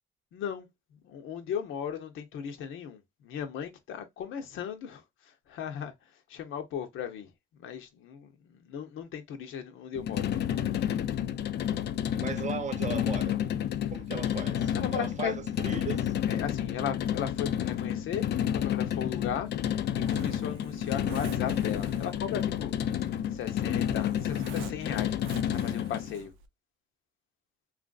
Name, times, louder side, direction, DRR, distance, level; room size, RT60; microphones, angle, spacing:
voice 1, 0.3-0.7 1.0-5.0 5.5-5.9 6.3-7.3 7.6-10.3 14.5-15.3 16.3-19.5 20.1-22.7 23.3-25.2 25.5-26.3, left 8 dB, 80° left, 0.8 m, -36 dB
sound 1, 10.0-26.1, left 10 dB, 60° left, 0.4 m, -30 dB
voice 2, 12.2-13.4 13.9-16.1, right 5 dB, 35° right, 0.7 m, -37 dB
Zipper (clothing), 19.1-26.5, right 8 dB, 85° right, 0.5 m, -48 dB
3.0 x 2.5 x 2.3 m
cardioid pair, 90°, 20 cm